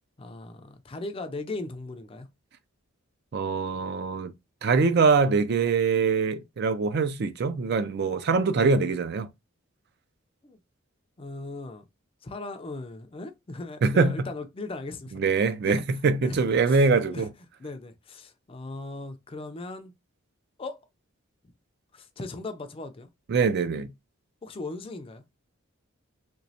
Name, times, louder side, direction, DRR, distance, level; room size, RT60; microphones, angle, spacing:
voice 1, 0.2-2.3 10.4-10.6 11.2-11.8 12.2-15.2 15.6-15.8 16.2-16.4 16.7-17.3 17.6-19.9 20.6-20.8 21.9-23.1 24.4-25.2, left 2 dB, 25° left, 0.4 m, -38 dB
voice 2, 3.3-4.3 4.6-9.3 13.8-14.3 15.1-17.3 23.3-23.9, right 4 dB, 50° right, 0.4 m, -23 dB
3.2 x 3.0 x 2.6 m
head